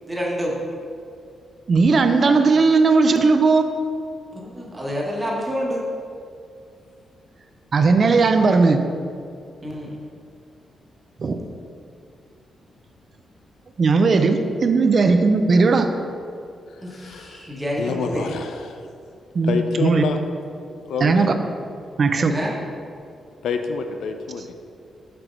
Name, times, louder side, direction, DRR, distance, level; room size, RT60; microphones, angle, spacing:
voice 1, 0.1-0.6 4.3-5.8 9.6-9.9 16.8-18.3 22.3-22.5, equal, 10° right, -3 dB, 1.1 m, -28 dB
voice 2, 1.7-3.6 7.7-8.8 11.2-11.4 13.8-15.9 19.3-20.0 21.0-21.4 22.0-22.3, right 4 dB, 40° right, 7 dB, 0.4 m, -17 dB
voice 3, 16.8-17.5 17.8-18.9 19.4-20.2 20.9-21.3 23.4-24.5, left 5 dB, 85° left, 6 dB, 0.4 m, -27 dB
6.0 x 4.4 x 5.1 m, 2.3 s
wide cardioid pair, 155°, 0 cm